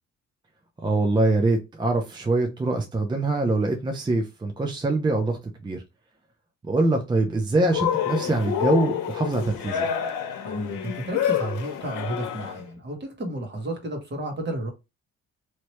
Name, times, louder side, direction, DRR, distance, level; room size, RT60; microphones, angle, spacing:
voice 1, 0.8-5.8 6.6-9.9, right 2 dB, 15° right, 0.5 m, -24 dB
Cheering, 7.7-12.6, left 9 dB, 85° left, 0.8 m, -28 dB
voice 2, 10.4-14.7, right 1 dB, 35° right, 1.3 m, -32 dB
3.1 x 2.8 x 3.1 m
cardioid pair, 90°, 30 cm